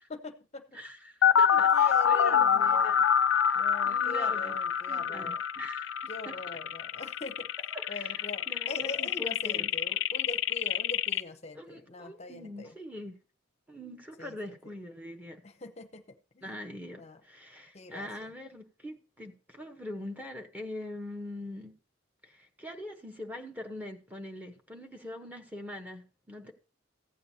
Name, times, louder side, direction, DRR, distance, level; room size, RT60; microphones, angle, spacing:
voice 1, 0.1-0.8 1.3-2.9 3.5-5.4 6.1-7.5 7.9-12.7 14.2-14.7 15.4-16.5 17.0-17.2 17.7-18.3, left 2 dB, 35° left, 0.6 m, -43 dB
voice 2, 0.7-3.0 3.3-4.6 4.9-5.9 6.3-6.4 7.7-9.7 11.5-13.2 13.7-15.4 16.4-21.7 22.2-26.5, left 1 dB, 10° right, 0.9 m, -43 dB
sound 1, 1.2-11.2, left 8 dB, 85° left, 0.4 m, -26 dB
14.5 x 8.7 x 2.7 m
head